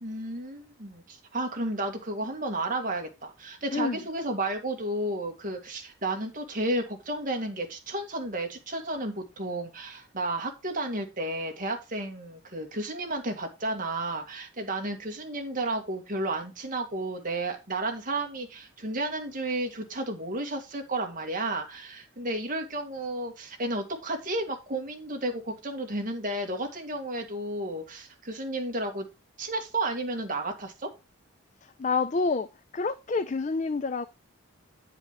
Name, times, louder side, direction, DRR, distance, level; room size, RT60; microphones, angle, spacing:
voice 1, 0.0-29.1 29.4-30.9, right 2 dB, 40° right, 2.0 m, -32 dB
voice 2, 31.6-32.5 32.7-34.1, left 4 dB, 35° left, 0.4 m, -28 dB
9.5 x 4.9 x 5.1 m
head